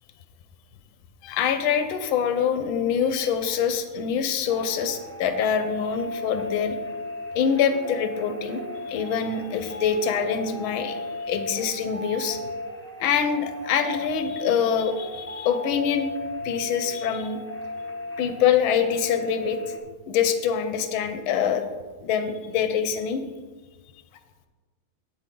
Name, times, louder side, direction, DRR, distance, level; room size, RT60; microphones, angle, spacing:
voice 1, 1.2-6.8 7.3-12.4 13.0-16.1 16.4-17.4 18.2-19.6 20.1-21.6 22.0-23.2, left 7 dB, 85° left, 8 dB, 1.6 m, -25 dB
sound 1, 4.5-19.8, left 2 dB, 15° left, 0.5 m, -36 dB
8.6 x 8.3 x 3.8 m, 1.4 s
omnidirectional pair, 2.2 m